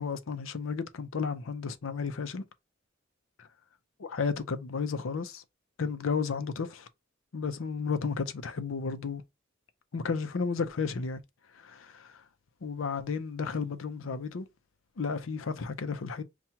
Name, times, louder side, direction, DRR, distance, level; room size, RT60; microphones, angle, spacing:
voice 1, 0.0-2.5 4.0-5.4 5.8-6.9 7.3-9.2 9.9-11.2 11.6-12.2 12.6-14.5 15.0-16.2, left 5 dB, 85° left, 0.5 m, -33 dB
5.6 x 2.3 x 2.8 m
head